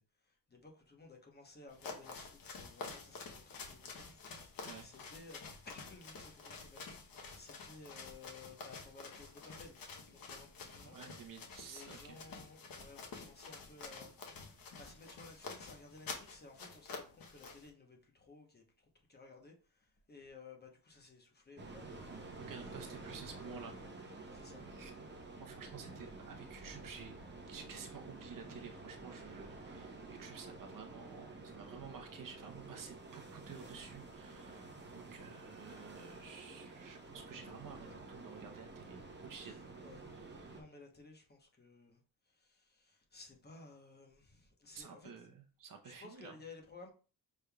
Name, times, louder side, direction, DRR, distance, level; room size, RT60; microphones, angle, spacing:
voice 1, 0.0-4.2 4.8-6.8 7.1-11.0 11.6-22.0 24.3-24.6 39.4-40.1 40.5-45.1 45.8-46.9, left 3 dB, 25° left, 2 dB, 0.9 m, -57 dB
sound 1, 1.7-17.7, left 4 dB, 60° left, 0.9 m, -49 dB
voice 2, 10.8-12.2 22.4-23.8 24.7-24.9 25.4-27.1 27.5-39.7 40.1-40.5 44.7-46.4, right 6 dB, 55° right, 4 dB, 0.8 m, -52 dB
sound 2, 21.6-40.6, right 3 dB, 25° right, 0.9 m, -50 dB
6.3 x 3.5 x 2.3 m, 0.38 s
wide cardioid pair, 140°, 39 cm